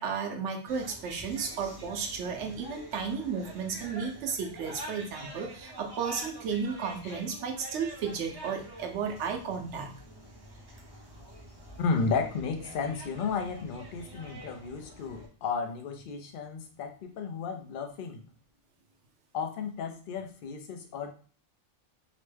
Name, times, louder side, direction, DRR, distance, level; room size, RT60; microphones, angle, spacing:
voice 1, 0.0-9.9, right 6 dB, 90° right, 3 dB, 0.9 m, -33 dB
sound 1, 0.7-15.3, right 1 dB, 30° right, 0.5 m, -47 dB
voice 2, 11.8-18.2 19.3-21.1, left 5 dB, 60° left, 5 dB, 0.6 m, -33 dB
3.0 x 2.1 x 3.2 m, 0.41 s
omnidirectional pair, 1.2 m